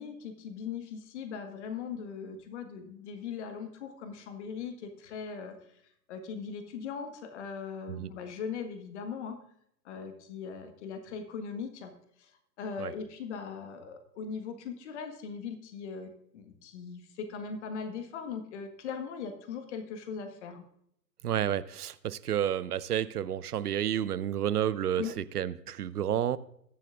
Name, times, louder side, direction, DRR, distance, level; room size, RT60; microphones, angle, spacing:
voice 1, 0.0-5.6 6.1-9.4 9.8-11.9 12.2-12.3 12.6-20.6 25.0-25.1, left 6 dB, 45° left, 1.6 m, -39 dB
voice 2, 21.2-26.4, right 10 dB, 65° right, 0.6 m, -30 dB
20.0 x 7.3 x 2.5 m
figure-of-eight pair, 120°, 50 cm